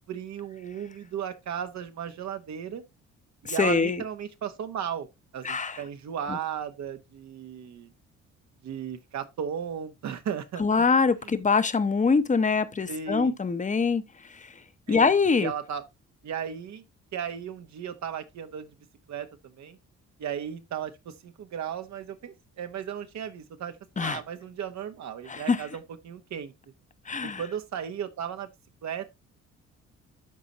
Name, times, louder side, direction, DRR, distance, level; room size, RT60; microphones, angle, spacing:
voice 1, 0.1-2.8 3.4-5.1 5.3-7.9 8.6-10.6 12.9-13.3 14.9-15.8 16.2-16.8 17.1-18.7 19.1-19.3 19.6-19.8 20.2-26.5 27.2-28.5 28.8-29.1, right 8 dB, 65° right, 1.1 m, -35 dB
voice 2, 3.4-4.0 5.4-5.8 6.3-6.4 10.6-14.6 14.9-15.5 24.0-24.2 25.3-25.7 27.1-27.4, left 5 dB, 25° left, 0.8 m, -24 dB
12.0 x 4.2 x 2.9 m
cardioid pair, 90°, 30 cm